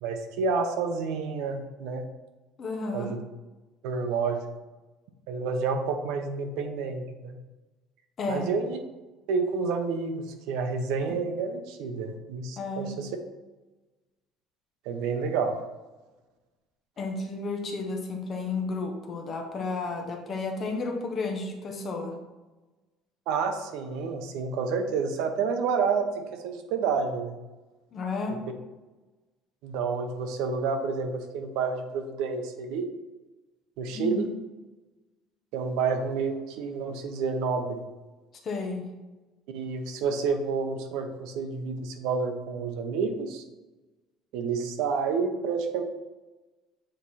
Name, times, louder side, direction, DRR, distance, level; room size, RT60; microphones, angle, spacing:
voice 1, 0.0-2.0 2.9-3.2 3.8-4.4 5.3-7.4 8.3-8.8 9.3-13.1 14.8-15.6 23.3-27.4 28.3-28.4 29.6-32.8 33.8-34.3 35.5-37.8 39.5-43.4 44.3-45.8, right 5 dB, 70° right, 6 dB, 0.7 m, -29 dB
voice 2, 2.6-3.1 8.2-8.5 12.6-13.0 17.0-22.1 27.9-28.4 33.9-34.3 38.4-38.9, left 3 dB, 25° left, 3 dB, 0.7 m, -32 dB
7.6 x 3.1 x 4.2 m, 1.1 s
cardioid pair, 180°, 0 cm